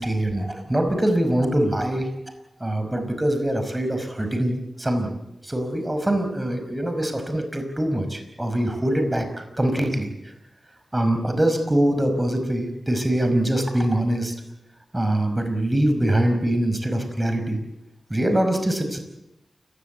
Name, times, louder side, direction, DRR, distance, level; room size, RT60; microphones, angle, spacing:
voice 1, 0.0-2.1 2.6-5.2 5.4-10.1 10.9-14.3 14.9-17.6 18.1-19.0, right 1 dB, 15° right, 6 dB, 5.3 m, -23 dB
29.0 x 17.0 x 8.4 m, 0.86 s
wide cardioid pair, 95°, 0 cm